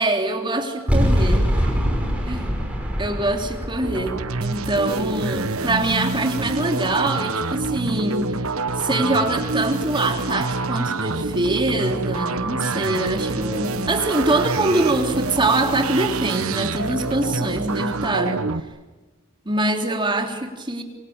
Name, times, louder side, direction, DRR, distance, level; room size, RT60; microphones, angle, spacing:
voice 1, 0.0-1.7 2.2-2.5 3.0-8.3 8.8-18.5 19.4-20.8, right 2 dB, 25° right, 4 dB, 3.3 m, -24 dB
sound 1, 0.9-6.1, equal, 5° right, 5.6 m, -24 dB
sound 2, 3.8-18.6, right 3 dB, 90° right, 1.2 m, -26 dB
26.0 x 24.5 x 8.9 m, 1.2 s
head